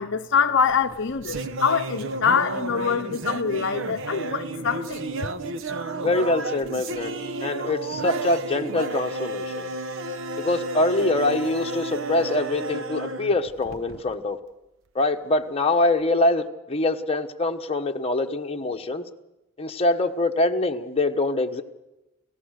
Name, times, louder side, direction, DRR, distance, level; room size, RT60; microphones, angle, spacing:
voice 1, 0.0-5.0, left 6 dB, 55° left, 0.7 m, -24 dB
sound 1, 0.7-14.1, right 2 dB, 60° right, 1.0 m, -32 dB
voice 2, 6.0-9.7 10.4-14.4 14.9-19.0 19.6-21.6, left 2 dB, 25° left, 1.2 m, -24 dB
29.5 x 15.0 x 6.5 m
head